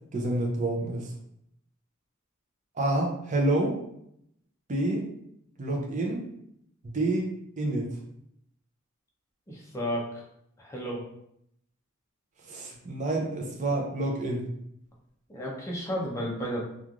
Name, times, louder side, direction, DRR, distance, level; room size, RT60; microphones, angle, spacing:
voice 1, 0.1-1.1 2.8-3.8 4.7-5.0 5.6-6.2 6.8-7.3 7.6-7.9 12.5-14.4, right 2 dB, 35° right, 0 dB, 0.5 m, -28 dB
voice 2, 9.5-10.1 10.6-11.0 15.3-16.6, equal, 15° left, -3 dB, 0.5 m, -32 dB
3.0 x 2.4 x 2.4 m, 0.75 s
head